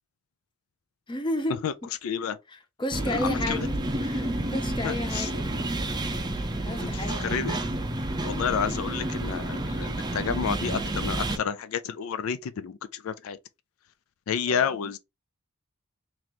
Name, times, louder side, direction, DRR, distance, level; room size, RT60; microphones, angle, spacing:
voice 1, 1.1-1.6 2.5-3.7 4.0-5.7 6.6-7.4 14.5-14.9, left 1 dB, 20° left, 0.6 m, -33 dB
voice 2, 2.0-2.4 3.2-3.6 4.8-5.3 6.8-7.6 8.2-13.4 14.3-15.0, left 7 dB, 70° left, 0.4 m, -30 dB
sound 1, 2.9-11.4, right 1 dB, 20° right, 0.5 m, -30 dB
3.0 x 2.9 x 3.9 m
head